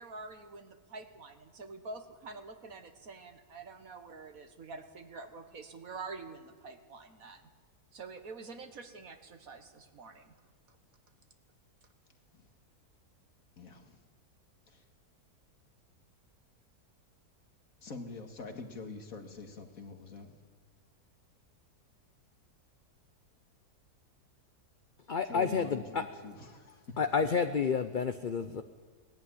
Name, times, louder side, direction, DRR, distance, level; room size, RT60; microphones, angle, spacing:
voice 1, 0.0-7.5 7.9-10.4 10.7-10.8, right 3 dB, 60° right, 8 dB, 1.9 m, -47 dB
voice 2, 13.6-14.0 14.7-14.8 17.8-20.3 25.3-27.0, left 4 dB, 60° left, 5 dB, 2.3 m, -45 dB
voice 3, 25.1-26.0 27.0-28.6, left 6 dB, 45° left, 9 dB, 0.7 m, -30 dB
19.5 x 14.0 x 10.0 m, 1.5 s
omnidirectional pair, 1.7 m